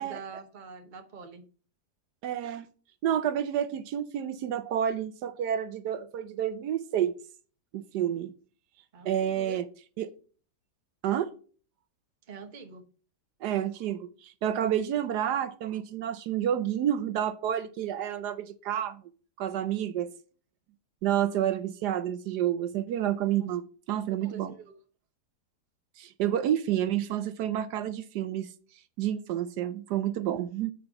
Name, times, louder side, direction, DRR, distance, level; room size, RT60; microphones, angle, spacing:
voice 1, 0.0-1.4 8.9-9.6 12.3-12.8 24.2-24.7, right 5 dB, 35° right, 1.0 m, -45 dB
voice 2, 2.2-2.7 3.0-7.1 7.7-8.3 9.0-9.6 10.0-10.1 11.0-11.3 13.4-19.0 19.4-20.1 21.0-23.6 23.9-24.5 26.0-28.5 29.0-30.7, right 10 dB, 80° right, 1.2 m, -29 dB
8.2 x 4.8 x 5.8 m
omnidirectional pair, 1.8 m